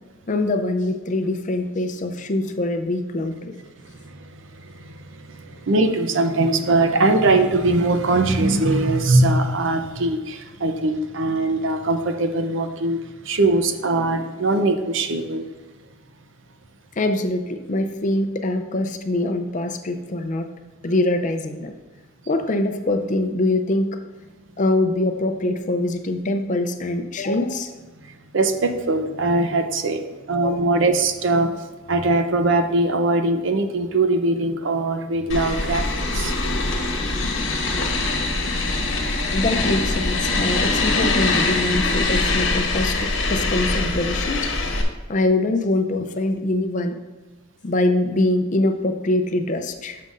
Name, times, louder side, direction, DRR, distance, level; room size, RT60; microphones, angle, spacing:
voice 1, 0.3-3.5 17.0-20.5 20.8-21.7 22.3-24.0 24.6-27.7 30.4-30.6 39.3-44.5 45.1-47.0 47.6-50.0, left 2 dB, 40° left, 7 dB, 0.5 m, -23 dB
voice 2, 5.7-13.0 13.3-15.5 28.3-30.0 30.3-31.5 31.9-35.8 36.1-36.5, right 2 dB, 65° right, 7 dB, 0.6 m, -21 dB
sound 1, 35.3-44.8, left 2 dB, 65° left, 1.1 m, -23 dB
9.3 x 6.5 x 2.5 m, 1.3 s
head